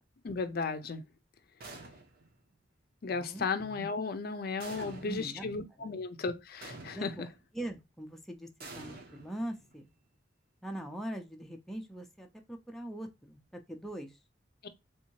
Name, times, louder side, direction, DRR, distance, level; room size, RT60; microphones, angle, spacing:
voice 1, 0.2-1.0 3.0-7.3 14.6-14.7, left 4 dB, 55° left, 0.5 m, -35 dB
sound 1, 1.6-2.4 4.6-5.4 6.6-7.4 8.6-9.8, right 2 dB, 55° right, 0.9 m, -48 dB
voice 2, 3.1-3.5 4.7-5.5 5.8-5.9 6.9-7.3 7.5-9.9 10.6-14.2, right 1 dB, ahead, 0.5 m, -42 dB
3.5 x 2.7 x 2.8 m
head